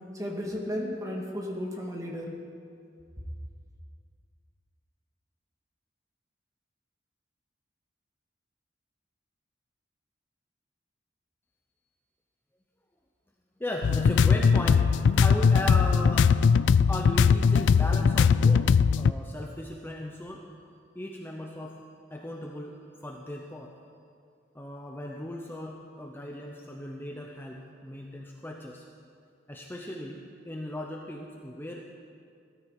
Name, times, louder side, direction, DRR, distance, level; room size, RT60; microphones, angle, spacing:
voice 1, 0.1-2.3, equal, 20° right, -1 dB, 2.0 m, -34 dB
voice 2, 13.6-14.9 15.2-16.4 16.9-18.7 19.0-20.4 20.9-21.8 22.1-22.7 23.0-23.7 24.5-28.8 29.5-31.9, left 1 dB, 10° left, 0 dB, 0.8 m, -37 dB
sound 1, 13.8-19.1, left 6 dB, 80° left, 0.3 m, -20 dB
17.0 x 13.5 x 4.9 m, 2.3 s
head